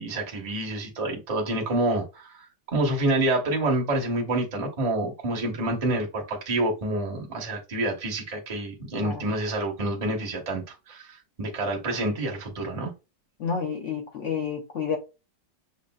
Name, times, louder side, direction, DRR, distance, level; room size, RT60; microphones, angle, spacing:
voice 1, 0.0-12.9, right 2 dB, 25° right, 0.8 m, -28 dB
voice 2, 13.4-15.0, left 6 dB, 55° left, 0.9 m, -30 dB
6.4 x 2.5 x 2.2 m
omnidirectional pair, 2.1 m